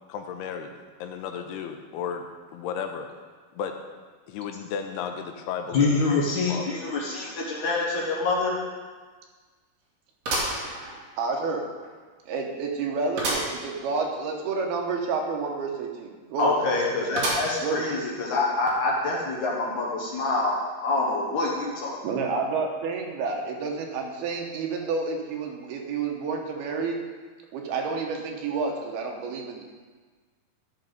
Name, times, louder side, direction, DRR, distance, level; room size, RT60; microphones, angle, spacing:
voice 1, 0.1-0.7 1.0-2.3 2.5-3.1 3.5-3.8 4.3-6.8, left 7 dB, 85° left, 5 dB, 2.6 m, -34 dB
voice 2, 5.7-8.6 16.4-21.9, left 3 dB, 60° left, -3 dB, 2.2 m, -26 dB
sound 1, 8.0-8.1 8.5-8.6 10.2-11.3 11.8-11.9 13.2-13.6 14.0-14.1 14.3-14.4 17.2-17.8 18.4-18.5 19.4-19.5, right 2 dB, 50° right, 2.6 m, -29 dB
voice 3, 11.2-11.7 12.3-16.6 17.6-17.9 22.0-27.1 27.5-29.6, right 4 dB, 75° right, 1 dB, 2.8 m, -29 dB
13.5 x 5.8 x 5.3 m, 1.4 s
omnidirectional pair, 4.8 m